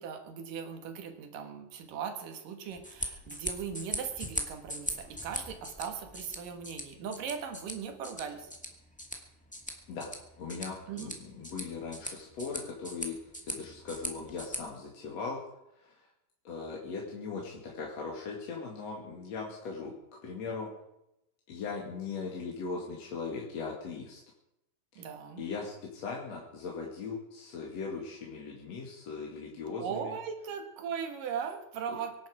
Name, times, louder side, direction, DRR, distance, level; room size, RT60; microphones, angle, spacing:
voice 1, 0.0-8.5 10.9-11.1 25.0-25.4 29.8-32.3, right 7 dB, 75° right, 6 dB, 3.2 m, -39 dB
sound 1, 2.7-14.6, equal, 5° left, 1.2 m, -41 dB
voice 2, 10.4-13.2 13.4-15.4 15.8-16.0 16.4-19.9 20.2-20.7 21.5-24.2 24.9-25.1 25.4-30.1 31.9-32.0, left 4 dB, 50° left, -2 dB, 3.0 m, -39 dB
24.0 x 10.5 x 4.9 m, 0.87 s
omnidirectional pair, 4.0 m